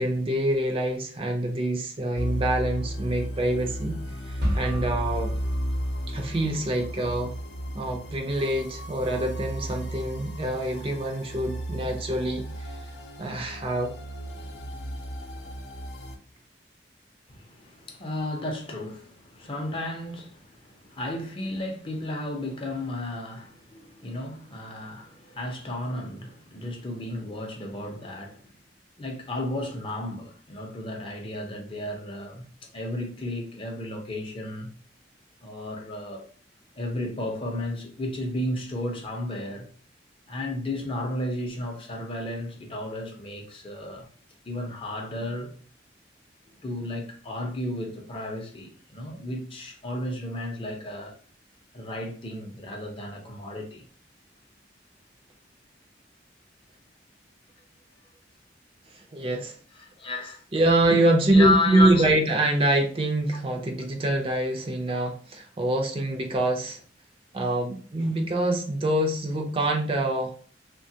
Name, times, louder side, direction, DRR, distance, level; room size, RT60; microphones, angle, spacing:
voice 1, 0.0-4.0 4.3-5.3 6.1-7.3 7.7-12.4 13.2-13.9 58.9-59.6 60.5-66.8 67.3-70.3, right 1 dB, 30° right, 0.5 m, -25 dB
sound 1, 2.1-16.2, equal, 75° left, 0.6 m, -34 dB
sound 2, 4.4-6.4, equal, 80° right, 0.9 m, -33 dB
voice 2, 17.3-28.5 29.0-34.7 35.4-36.2 36.7-39.7 40.3-44.1 44.4-45.5 46.6-51.1 51.7-53.8 59.7-60.4 61.3-62.3 63.3-63.4, left 1 dB, 30° left, 0.6 m, -33 dB
3.1 x 2.2 x 2.7 m
head